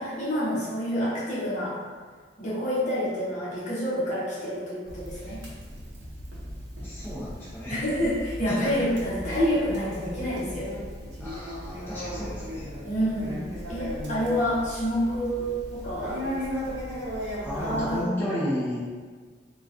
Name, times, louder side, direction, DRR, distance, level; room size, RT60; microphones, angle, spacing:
voice 1, 0.0-1.8 2.4-5.4 7.7-10.7 12.8-16.4 17.5-18.2, equal, 45° left, -8 dB, 0.9 m, -28 dB
Conversation, 4.9-18.0, equal, 75° right, 0.6 m, -36 dB
voice 2, 6.8-7.8 8.4-8.7 11.2-12.7 17.4-18.8, equal, 10° left, -11 dB, 0.6 m, -32 dB
3.7 x 2.3 x 2.5 m, 1.5 s
head